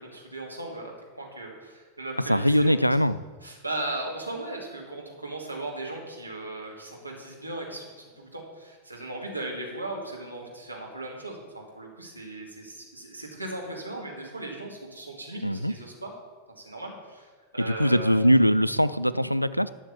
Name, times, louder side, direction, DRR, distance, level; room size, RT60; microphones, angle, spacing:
voice 1, 0.0-2.9 3.4-16.1 16.6-18.2, right 2 dB, 85° right, -2 dB, 2.3 m, -37 dB
voice 2, 2.3-3.2 15.4-15.7 17.7-19.7, equal, 90° left, 15 dB, 0.3 m, -22 dB
11.5 x 6.5 x 7.1 m, 1.4 s
figure-of-eight pair, 90°, 0 cm